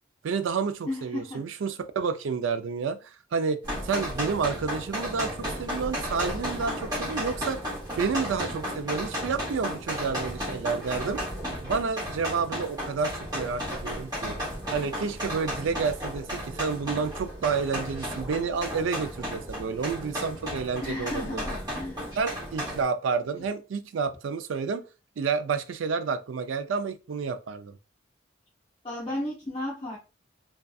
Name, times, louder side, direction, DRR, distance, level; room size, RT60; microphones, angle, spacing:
voice 1, 0.2-3.6 3.8-7.6 8.0-11.2 11.6-14.4 14.7-21.4 22.2-24.8 25.2-27.7, right 5 dB, 80° right, 0.4 m, -30 dB
voice 2, 0.9-1.5 20.8-22.2 28.8-30.0, left 1 dB, 25° left, 0.6 m, -34 dB
sound 1, 3.6-22.8, equal, 20° right, 0.9 m, -34 dB
2.5 x 2.3 x 2.3 m
head